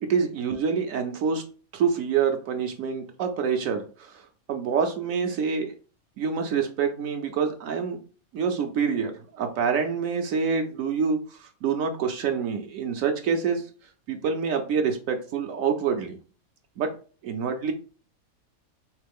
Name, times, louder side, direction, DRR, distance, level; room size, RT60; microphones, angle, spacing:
voice 1, 0.1-1.4 1.7-4.2 4.5-5.7 6.2-8.0 8.3-13.6 14.1-16.2 16.8-16.9 17.2-17.7, right 6 dB, 70° right, 5 dB, 1.0 m, -26 dB
3.7 x 3.2 x 3.5 m, 0.38 s
omnidirectional pair, 1.5 m